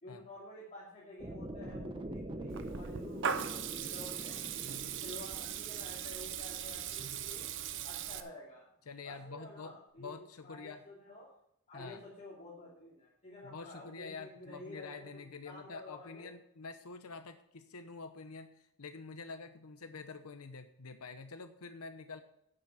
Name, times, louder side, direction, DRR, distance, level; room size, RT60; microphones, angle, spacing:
voice 1, 0.0-4.4 5.0-7.5 7.8-8.7 9.0-11.3 11.7-16.3, left 1 dB, 35° left, -6 dB, 2.8 m, -51 dB
sound 1, 1.2-7.3, right 1 dB, 20° right, 1.0 m, -45 dB
Water tap faucet / Liquid, 2.5-8.2, right 8 dB, 60° right, 0.8 m, -39 dB
voice 2, 8.9-9.7 10.0-10.8 11.7-12.0 13.4-22.2, left 4 dB, 90° left, 8 dB, 0.9 m, -47 dB
11.0 x 7.7 x 5.6 m, 0.75 s
head